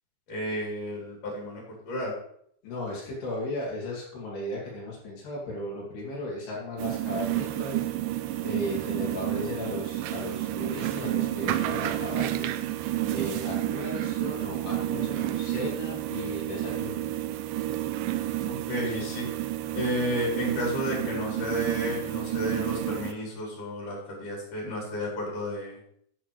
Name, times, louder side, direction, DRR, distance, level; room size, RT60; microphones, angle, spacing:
voice 1, 0.3-2.1 18.4-19.3 19.7-25.8, equal, 50° left, -3 dB, 5.1 m, -32 dB
voice 2, 2.6-7.8 8.4-12.5 13.1-17.1 18.5-19.3, left 1 dB, 75° left, -5 dB, 4.6 m, -36 dB
sound 1, 6.8-23.1, right 14 dB, 85° right, 1.9 m, -30 dB
11.0 x 10.5 x 3.2 m, 0.66 s
omnidirectional pair, 4.7 m